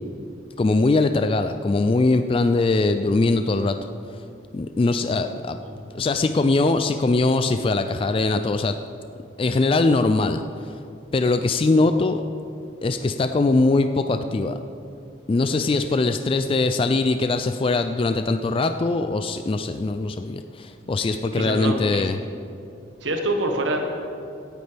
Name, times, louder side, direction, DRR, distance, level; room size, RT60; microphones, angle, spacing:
voice 1, 0.6-3.8 4.5-5.6 5.9-8.8 9.4-10.7 11.1-12.2 12.8-14.6 15.3-22.2, left 3 dB, 30° left, 8 dB, 0.3 m, -21 dB
voice 2, 5.6-6.0 21.3-22.1 23.0-23.8, right 1 dB, 75° right, 3 dB, 1.4 m, -26 dB
17.0 x 9.5 x 3.4 m, 2.5 s
head